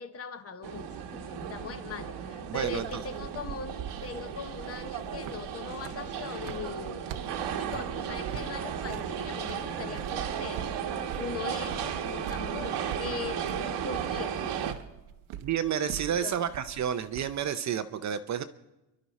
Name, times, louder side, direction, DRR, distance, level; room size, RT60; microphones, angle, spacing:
voice 1, 0.0-7.0 7.5-10.7 11.2-14.4 16.0-16.5, left 6 dB, 30° left, 9 dB, 0.9 m, -40 dB
sound 1, 0.6-14.7, right 8 dB, 60° right, 1.4 m, -35 dB
voice 2, 2.5-3.0 15.4-18.4, right 9 dB, 40° right, 10 dB, 0.7 m, -30 dB
sound 2, 2.6-17.5, right 10 dB, 85° right, 1.1 m, -45 dB
29.0 x 11.5 x 4.1 m, 0.98 s
cardioid pair, 155°, 47 cm